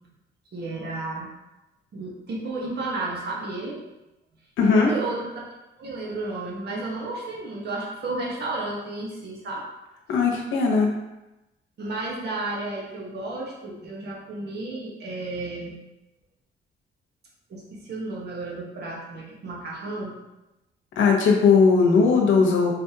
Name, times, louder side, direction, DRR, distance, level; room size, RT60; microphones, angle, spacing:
voice 1, 0.5-1.3 1.9-3.8 4.7-5.3 5.8-9.6 11.8-15.8 17.5-20.2, right 2 dB, 55° right, -3 dB, 1.2 m, -32 dB
voice 2, 4.6-4.9 10.1-10.9 21.0-22.7, left 5 dB, 80° left, 0 dB, 0.9 m, -18 dB
4.1 x 3.4 x 2.8 m, 0.99 s
cardioid pair, 90°, 20 cm